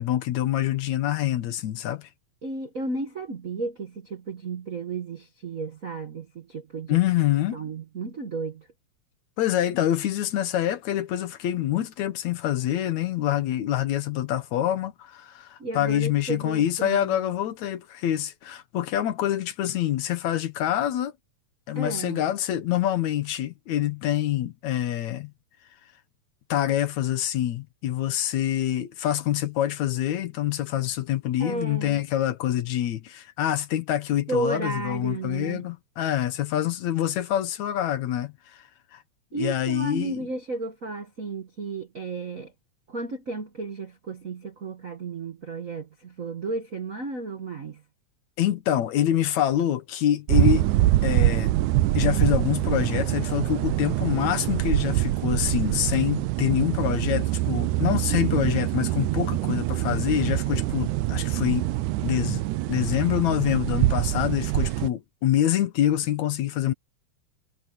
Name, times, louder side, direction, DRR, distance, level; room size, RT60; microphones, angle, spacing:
voice 1, 0.0-2.1 6.9-7.6 9.4-21.1 21.7-25.3 26.5-38.6 38.9-39.0 39.3-40.3 48.4-50.7 51.0-51.5 51.9-61.7 62.0-62.4 62.7-66.7, left 12 dB, 70° left, 2.4 m, -26 dB
voice 2, 2.4-7.0 7.5-8.7 15.6-17.2 21.7-22.2 31.4-32.0 34.3-35.7 39.3-42.5 42.9-47.8, right 3 dB, 50° right, 1.0 m, -33 dB
sound 1, 50.3-64.9, right 16 dB, 85° right, 2.1 m, -24 dB
omnidirectional pair, 3.5 m